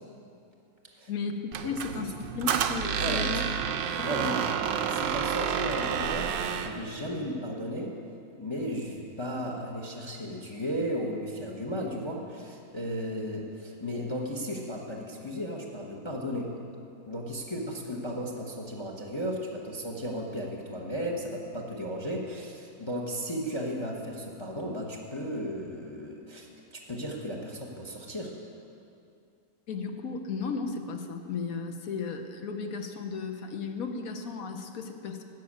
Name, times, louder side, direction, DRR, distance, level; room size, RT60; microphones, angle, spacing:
voice 1, 1.1-3.5 4.0-4.4 29.7-35.2, left 4 dB, 60° left, 6 dB, 1.1 m, -35 dB
Squeak, 1.5-6.8, right 8 dB, 85° right, 1.3 m, -29 dB
voice 2, 3.0-3.3 4.0-4.4 4.9-7.9 8.4-16.5 17.1-28.3, equal, 20° left, 0 dB, 0.8 m, -35 dB
12.5 x 6.2 x 8.6 m, 2.5 s
omnidirectional pair, 1.9 m